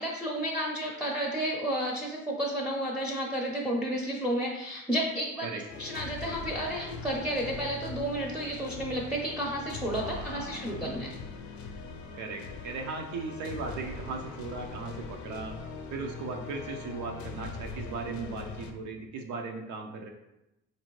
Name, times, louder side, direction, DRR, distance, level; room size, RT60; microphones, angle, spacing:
voice 1, 0.0-11.2, right 1 dB, 5° right, -4 dB, 0.6 m, -32 dB
sound 1, 5.7-18.7, left 4 dB, 70° left, 0.5 m, -41 dB
voice 2, 10.0-11.0 12.1-15.5 15.9-20.1, right 4 dB, 75° right, 2 dB, 0.5 m, -38 dB
4.1 x 2.7 x 3.0 m, 0.89 s
cardioid pair, 90°, 30 cm